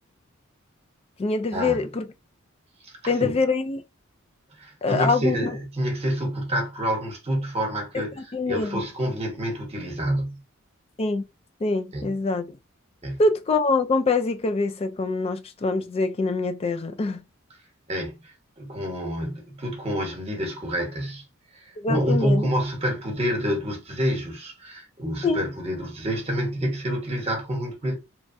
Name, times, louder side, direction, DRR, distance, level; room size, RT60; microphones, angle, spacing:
voice 1, 1.2-2.1 3.1-3.8 4.8-5.5 7.9-8.0 8.3-8.8 11.0-11.2 11.6-12.5 13.2-17.2 21.8-22.5 25.2-25.4, left 3 dB, 30° left, 0.3 m, -24 dB
voice 2, 2.8-3.4 4.6-10.4 11.9-12.2 13.0-13.2 17.9-18.2 18.6-21.2 21.5-28.0, equal, 30° right, 1.0 m, -28 dB
3.0 x 2.2 x 2.5 m
head